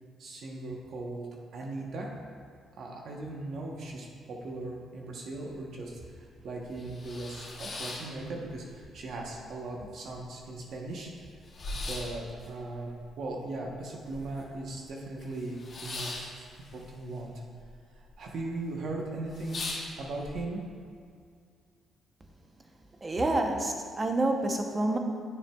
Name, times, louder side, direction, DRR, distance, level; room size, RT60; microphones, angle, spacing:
voice 1, 0.2-1.3 1.5-2.1 2.8-11.1 11.7-12.9 13.2-17.3 18.0-20.6, right 2 dB, 65° right, -1 dB, 1.0 m, -38 dB
sound 1, 6.8-8.8 9.1-9.8 10.2-10.3 10.4-14.6 14.9-17.7 17.9-18.5 18.9-19.0 19.3-20.3, left 2 dB, 50° left, 1.7 m, -40 dB
voice 2, 23.0-25.0, right 2 dB, 25° right, 3 dB, 0.8 m, -28 dB
8.8 x 7.2 x 2.3 m, 2.2 s
cardioid pair, 90°, 0 cm